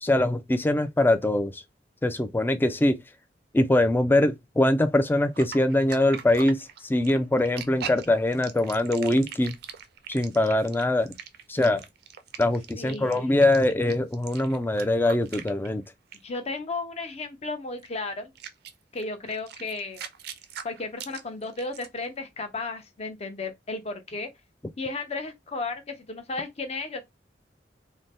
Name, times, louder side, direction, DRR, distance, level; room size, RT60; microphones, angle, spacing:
voice 1, 0.0-1.6 2.0-3.0 3.5-9.6 10.1-11.1 11.5-11.8 12.4-15.8, left 1 dB, 10° left, 0.3 m, -23 dB
sound 1, 5.3-16.4 17.8-17.9 18.4-22.1, right 8 dB, 60° right, 0.4 m, -41 dB
voice 2, 12.8-13.4 16.2-18.3 18.9-20.0 20.6-24.3 24.8-27.0, left 3 dB, 40° left, 0.7 m, -34 dB
2.7 x 2.1 x 3.3 m
head